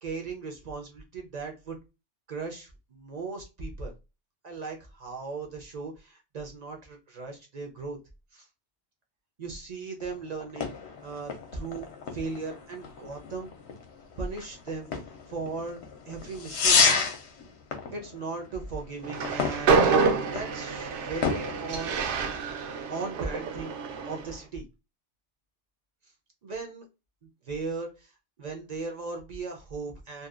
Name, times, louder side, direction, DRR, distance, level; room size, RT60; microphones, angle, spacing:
voice 1, 0.0-1.8 2.3-3.9 4.4-8.0 8.3-8.5 9.4-10.7 11.0-13.5 14.1-16.9 17.9-20.0 20.3-22.0 22.9-23.7 24.1-24.6 26.4-26.9 27.4-28.1 28.4-30.3, right 4 dB, 50° right, 2 dB, 0.5 m, -37 dB
sound 1, 10.0-22.6, left 5 dB, 65° left, 0.9 m, -31 dB
Train, 19.0-24.3, right 4 dB, 75° right, 0.9 m, -27 dB
2.7 x 2.2 x 2.3 m, 0.27 s
omnidirectional pair, 1.2 m